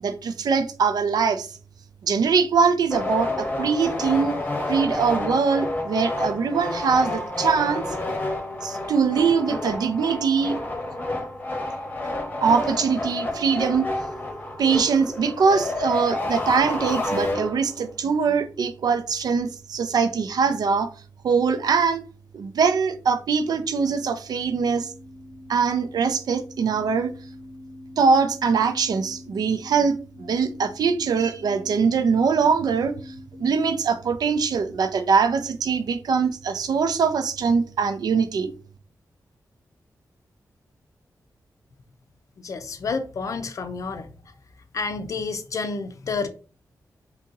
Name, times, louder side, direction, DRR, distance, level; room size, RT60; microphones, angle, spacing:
voice 1, 0.0-1.6 2.0-4.4 4.7-7.8 8.6-10.6 12.4-13.9 14.6-20.9 21.2-22.0 22.3-24.9 25.5-27.1 28.0-33.1 33.4-38.5, right 5 dB, 80° right, 0.5 m, -22 dB
sound 1, 2.9-17.9, left 2 dB, 25° left, 0.8 m, -29 dB
sound 2, 24.2-33.8, left 2 dB, 15° right, 0.9 m, -44 dB
voice 2, 42.4-44.1 44.7-46.3, left 4 dB, 55° left, 0.5 m, -29 dB
2.8 x 2.7 x 3.8 m
wide cardioid pair, 155°, 7 cm